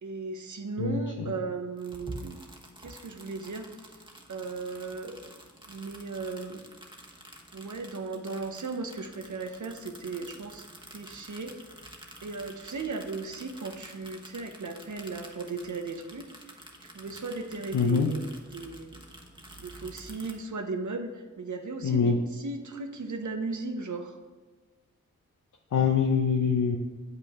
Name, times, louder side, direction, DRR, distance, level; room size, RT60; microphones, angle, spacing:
voice 1, 0.0-2.4 2.8-3.7 4.3-5.2 5.7-6.6 7.5-10.6 10.9-11.5 12.2-16.3 16.8-19.0 19.6-24.2, right 3 dB, 75° right, 5 dB, 0.8 m, -36 dB
voice 2, 0.8-1.3 17.7-18.1 21.8-22.2 25.7-26.8, left 6 dB, 80° left, 1 dB, 0.6 m, -24 dB
sound 1, 1.8-20.3, right 1 dB, 15° right, 1.1 m, -49 dB
7.8 x 5.6 x 3.6 m, 1.3 s
cardioid pair, 40°, 30 cm